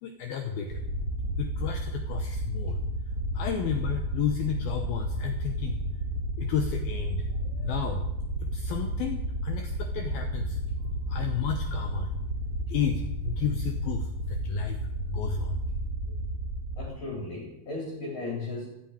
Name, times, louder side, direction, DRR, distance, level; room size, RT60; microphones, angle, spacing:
voice 1, 0.0-0.8 1.4-2.8 3.3-5.8 6.4-8.1 8.4-12.1 12.7-15.6, left 8 dB, 80° left, 5 dB, 2.1 m, -33 dB
sound 1, 0.7-16.8, right 1 dB, 80° right, 0.9 m, -32 dB
voice 2, 16.8-18.7, left 3 dB, 45° left, -2 dB, 4.6 m, -35 dB
15.0 x 9.2 x 8.9 m, 0.86 s
omnidirectional pair, 5.6 m